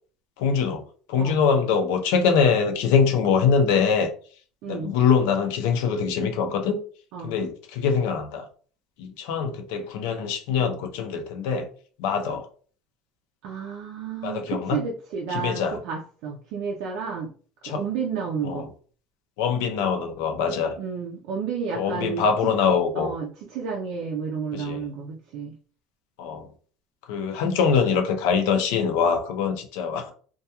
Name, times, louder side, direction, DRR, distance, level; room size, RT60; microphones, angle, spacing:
voice 1, 0.4-0.8 1.1-4.1 4.7-6.8 7.2-8.5 9.0-11.7 12.0-12.5 14.2-14.8 15.3-15.8 17.6-17.8 18.4-18.6 19.4-20.7 21.7-23.1 24.5-24.8 26.2-26.5 27.1-30.1, left 6 dB, 80° left, 5 dB, 0.5 m, -23 dB
voice 2, 4.6-4.9 7.1-7.3 13.4-17.3 17.7-18.7 20.8-22.5 23.0-25.5, right 6 dB, 60° right, -1 dB, 0.4 m, -31 dB
2.2 x 2.2 x 2.8 m, 0.43 s
cardioid pair, 175°, 0 cm